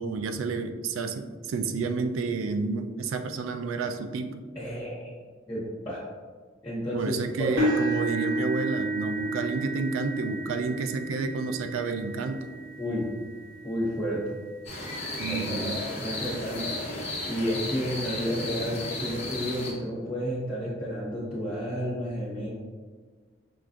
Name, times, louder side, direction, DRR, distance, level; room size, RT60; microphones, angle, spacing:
voice 1, 0.0-4.4 6.9-12.5 15.2-15.8, right 4 dB, 85° right, 8 dB, 0.4 m, -30 dB
voice 2, 4.5-5.1 5.5-6.0 6.6-7.6 12.8-13.0 13.6-14.2 15.3-15.8 16.0-16.6 17.2-22.5, equal, 15° left, -10 dB, 1.4 m, -31 dB
sound 1, 7.6-15.6 16.2-16.5 16.9-17.0 18.4-18.5, right 2 dB, 70° right, 1.1 m, -32 dB
sound 2, 14.6-19.7, left 2 dB, 30° left, 0.9 m, -34 dB
5.9 x 2.4 x 2.4 m, 1.5 s
head